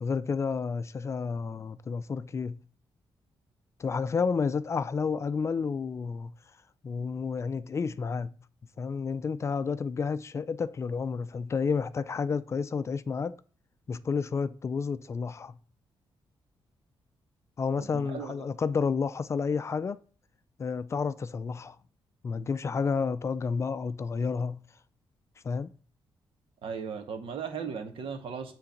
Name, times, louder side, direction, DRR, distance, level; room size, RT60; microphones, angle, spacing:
voice 1, 0.0-2.6 3.8-6.3 6.8-8.4 8.8-13.4 13.9-15.6 17.6-20.0 20.6-21.8 22.2-24.6 25.4-25.7, left 5 dB, 30° left, 0.4 m, -30 dB
voice 2, 17.8-18.4 26.6-28.5, right 6 dB, 80° right, 1.8 m, -37 dB
9.4 x 3.9 x 7.1 m
wide cardioid pair, 170°, 9 cm